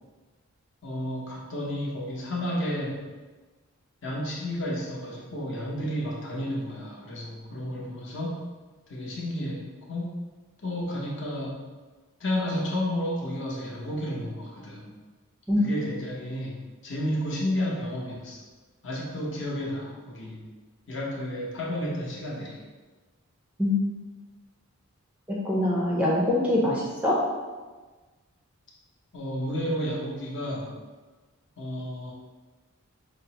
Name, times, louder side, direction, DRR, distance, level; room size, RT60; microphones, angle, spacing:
voice 1, 0.8-3.0 4.0-8.4 8.9-10.2 10.6-11.6 12.2-14.9 15.6-16.6 16.8-18.4 18.8-20.4 20.9-22.6 29.1-30.7 31.6-32.1, equal, 55° left, -4 dB, 0.8 m, -31 dB
voice 2, 25.3-27.2, left 1 dB, 5° right, -5 dB, 0.4 m, -24 dB
5.2 x 2.0 x 2.8 m, 1.3 s
head